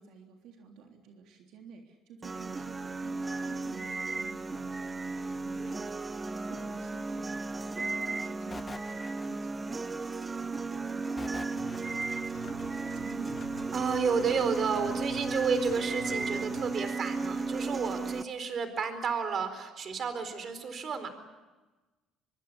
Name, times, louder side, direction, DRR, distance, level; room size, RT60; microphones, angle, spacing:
voice 1, 0.0-13.5, right 5 dB, 70° right, 2 dB, 3.4 m, -52 dB
sound 1, 2.2-18.2, right 3 dB, 20° right, 0.7 m, -35 dB
sound 2, 8.5-9.8 11.2-12.3, left 3 dB, 20° left, 1.4 m, -46 dB
sound 3, 11.6-16.8, left 4 dB, 50° left, 5.5 m, -50 dB
voice 2, 13.7-21.1, right 5 dB, 45° right, 10 dB, 4.3 m, -31 dB
25.0 x 23.5 x 8.4 m, 1.2 s
cardioid pair, 120°, 0 cm